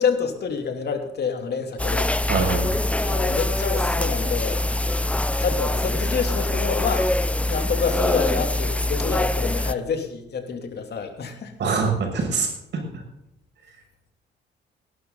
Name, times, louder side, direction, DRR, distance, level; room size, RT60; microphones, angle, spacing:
voice 1, 0.0-2.1 3.0-4.6 5.4-11.5, left 6 dB, 55° left, 4 dB, 3.1 m, -27 dB
sound 1, 1.8-9.7, left 1 dB, 5° left, 0.6 m, -24 dB
voice 2, 2.3-2.7 11.6-12.5 12.7-12.8, right 5 dB, 60° right, 2 dB, 6.6 m, -23 dB
18.0 x 12.0 x 4.0 m, 0.82 s
cardioid pair, 90°, 20 cm